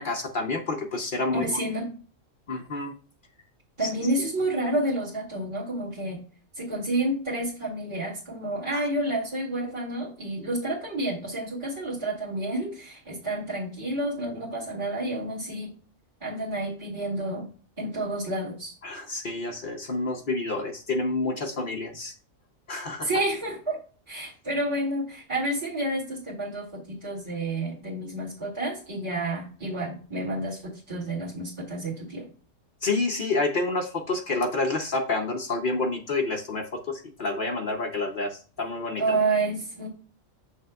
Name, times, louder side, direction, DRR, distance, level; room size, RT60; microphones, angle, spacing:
voice 1, 0.0-1.6 2.5-2.9 3.8-3.9 8.7-8.8 18.8-22.1 22.7-23.1 32.8-38.3 38.6-39.0, left 3 dB, 45° left, 3 dB, 0.8 m, -28 dB
voice 2, 1.3-1.9 3.8-6.2 6.6-15.7 16.2-17.5 17.8-18.7 23.0-23.8 24.1-32.3 39.0-39.9, right 1 dB, 20° right, -7 dB, 1.9 m, -29 dB
7.3 x 6.3 x 2.3 m, 0.39 s
omnidirectional pair, 1.4 m